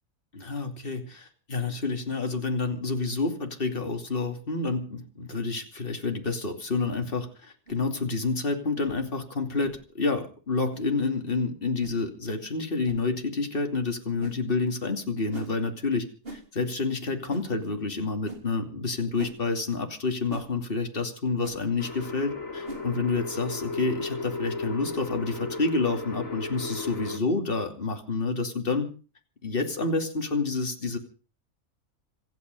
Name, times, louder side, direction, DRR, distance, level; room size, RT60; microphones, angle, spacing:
voice 1, 0.3-28.9 29.4-31.0, left 3 dB, 40° left, 5 dB, 2.8 m, -29 dB
sound 1, 7.7-7.8 8.7-8.9 9.6-9.8 10.7-10.8 11.8-12.0 12.8-13.0 14.2-14.4 15.3-15.5 16.2-16.4 17.3-17.5 18.3-18.4 19.2-19.4 20.3-20.5 21.4-21.6 22.6-22.9, right 3 dB, 40° right, 3.4 m, -40 dB
sound 2, 21.8-27.2, left 3 dB, 70° left, 3.3 m, -35 dB
26.5 x 9.3 x 5.4 m, 0.37 s
omnidirectional pair, 1.4 m